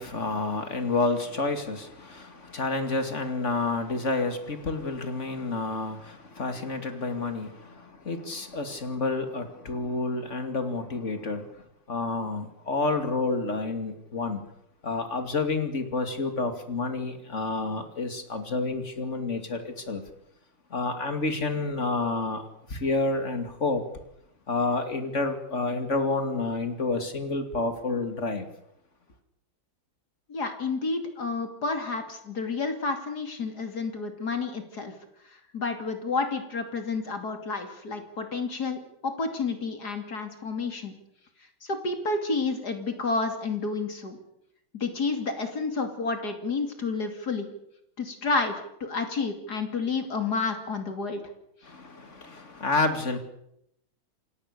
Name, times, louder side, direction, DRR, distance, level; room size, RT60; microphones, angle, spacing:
voice 1, 0.0-14.4 14.8-20.0 20.7-23.8 24.5-28.5 51.6-53.2, left 3 dB, 35° left, 7 dB, 2.7 m, -29 dB
voice 2, 30.3-34.9 35.2-40.9 41.6-44.2 44.7-47.5 48.0-51.2, left 4 dB, 50° left, 6 dB, 3.2 m, -30 dB
28.0 x 17.5 x 6.8 m, 0.76 s
omnidirectional pair, 2.2 m